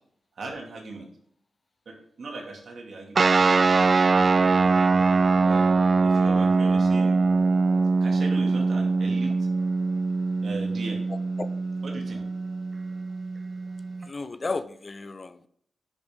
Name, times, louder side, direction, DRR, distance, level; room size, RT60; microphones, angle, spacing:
voice 1, 0.4-1.1 1.9-3.8 5.4-5.8 6.0-7.2 8.0-9.3 10.4-11.0 11.8-12.2, right 3 dB, 70° right, 1 dB, 2.4 m, -38 dB
sound 1, 3.1-14.1, right 4 dB, 50° right, 0.3 m, -22 dB
voice 2, 14.1-15.5, left 3 dB, 45° left, 13 dB, 0.6 m, -33 dB
10.0 x 5.4 x 3.8 m, 0.68 s
cardioid pair, 50°, 0 cm